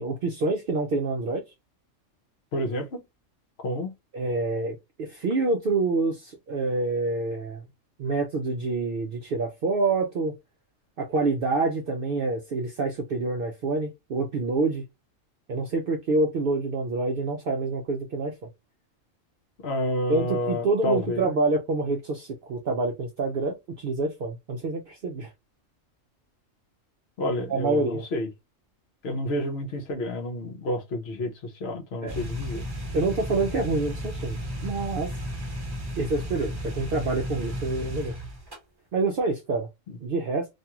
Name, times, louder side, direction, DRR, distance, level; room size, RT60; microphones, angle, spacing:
voice 1, 0.0-1.4 4.1-7.6 8.0-10.3 11.0-14.8 15.5-18.3 20.1-25.3 27.5-28.0 32.0-32.1 32.9-35.1 36.0-38.1 38.9-39.7 40.0-40.5, right 3 dB, 65° right, 0.5 m, -27 dB
voice 2, 2.5-3.0 3.6-3.9 19.6-21.3 27.2-28.3 29.0-31.3 31.6-32.6, left 1 dB, 60° left, 0.8 m, -29 dB
sound 1, 32.1-38.6, equal, 20° right, 0.9 m, -34 dB
2.6 x 2.3 x 2.8 m
omnidirectional pair, 1.4 m